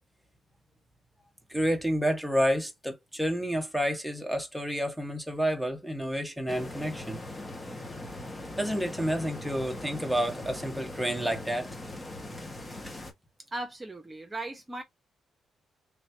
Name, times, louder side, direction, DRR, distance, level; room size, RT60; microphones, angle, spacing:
voice 1, 1.5-7.2 8.6-11.7, equal, ahead, 1.2 m, -29 dB
sound 1, 6.5-13.1, left 1 dB, 25° left, 1.3 m, -40 dB
voice 2, 13.5-14.8, right 2 dB, 20° right, 1.1 m, -37 dB
3.4 x 3.0 x 2.8 m
supercardioid pair, 60°, 0 cm